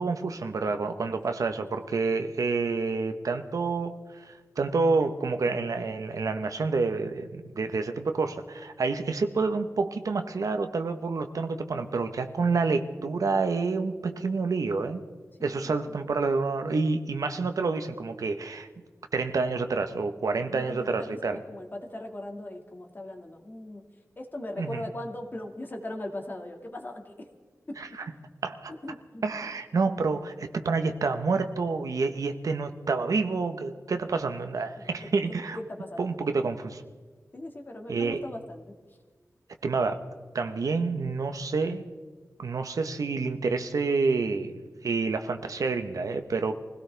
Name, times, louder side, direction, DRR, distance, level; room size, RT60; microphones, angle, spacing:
voice 1, 0.0-15.0 15.4-18.7 19.1-21.4 24.6-24.8 27.8-28.1 28.4-28.7 29.2-35.6 36.0-36.8 37.9-38.2 39.6-40.0 40.3-41.8 42.4-46.6, right 4 dB, 85° right, 7 dB, 1.2 m, -28 dB
voice 2, 15.4-16.0 20.5-23.8 24.2-27.3 27.7-27.8 28.1-28.2 28.8-29.2 34.8-35.1 35.6-36.3 37.3-38.6, left 1 dB, 35° left, 3 dB, 2.1 m, -39 dB
24.5 x 17.0 x 3.5 m, 1.4 s
wide cardioid pair, 105°, 6 cm